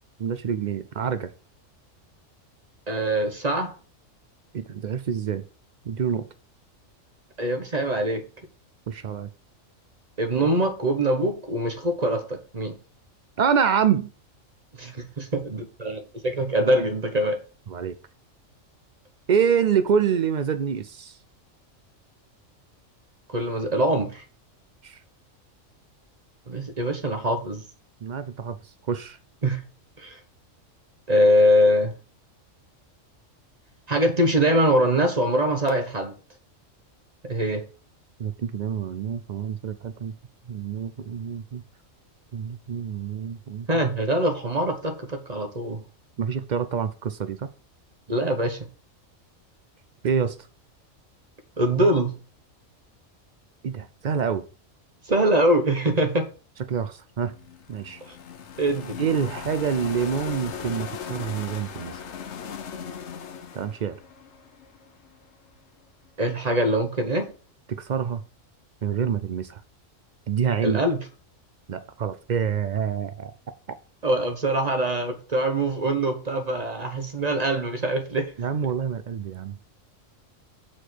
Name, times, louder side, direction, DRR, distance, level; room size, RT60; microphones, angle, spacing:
voice 1, 0.2-1.3 4.5-5.4 5.8-6.3 8.9-9.3 13.4-14.1 17.7-18.0 19.3-21.2 24.8-25.0 28.0-28.6 28.9-29.2 38.2-40.1 40.5-41.6 42.3-43.8 46.2-47.5 50.0-50.4 53.6-54.4 56.7-57.3 57.7-58.0 59.0-62.0 63.5-64.0 67.7-68.2 68.8-69.6 70.3-70.8 71.7-73.3 78.4-79.6, right 7 dB, 60° right, 11 dB, 0.4 m, -26 dB
voice 2, 2.9-3.7 7.4-8.2 10.2-12.8 14.8-17.4 23.3-24.2 26.5-27.6 29.4-29.6 30.0-30.2 31.1-31.9 33.9-36.1 37.2-37.7 43.7-45.8 48.1-48.7 51.6-52.1 55.1-56.3 58.1-58.2 58.6-59.0 66.2-67.3 70.6-71.0 74.0-78.3, right 1 dB, 35° right, 6 dB, 0.9 m, -23 dB
sound 1, 57.2-65.3, left 7 dB, 65° left, 1.0 m, -38 dB
6.9 x 4.4 x 4.5 m, 0.36 s
omnidirectional pair, 1.4 m